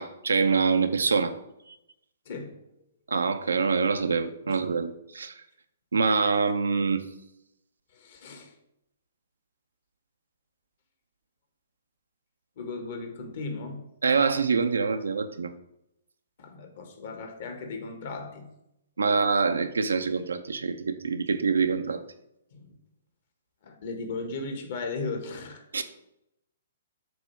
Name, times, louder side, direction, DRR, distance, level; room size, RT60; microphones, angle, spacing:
voice 1, 0.0-1.3 1.7-1.8 3.1-5.3 5.9-7.0 14.0-15.5 19.0-22.0 25.7-25.8, right 5 dB, 75° right, 8 dB, 0.7 m, -25 dB
voice 2, 2.2-2.6 4.4-4.6 7.9-8.5 12.6-13.8 16.4-18.5 22.5-22.8 23.6-25.8, left 3 dB, 55° left, 5 dB, 1.5 m, -36 dB
7.8 x 3.0 x 5.7 m, 0.81 s
figure-of-eight pair, 125°, 0 cm